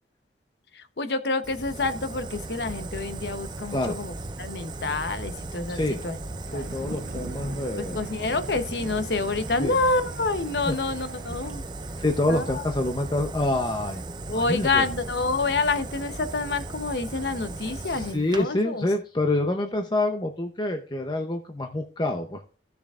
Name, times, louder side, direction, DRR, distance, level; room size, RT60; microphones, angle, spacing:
voice 1, 0.7-6.2 6.5-7.0 7.9-11.6 12.3-12.6 14.3-18.9, left 3 dB, 70° left, 10 dB, 0.9 m, -28 dB
Fire, 1.4-18.4, right 2 dB, 25° right, 0.5 m, -37 dB
voice 2, 5.7-6.0 6.5-8.0 9.6-9.8 10.7-10.8 12.0-14.0 14.3-14.9 17.8-22.4, left 2 dB, 25° left, 4 dB, 0.7 m, -27 dB
sound 1, 6.4-11.5, right 2 dB, 60° right, 0.7 m, -43 dB
15.5 x 7.0 x 2.4 m, 0.38 s
head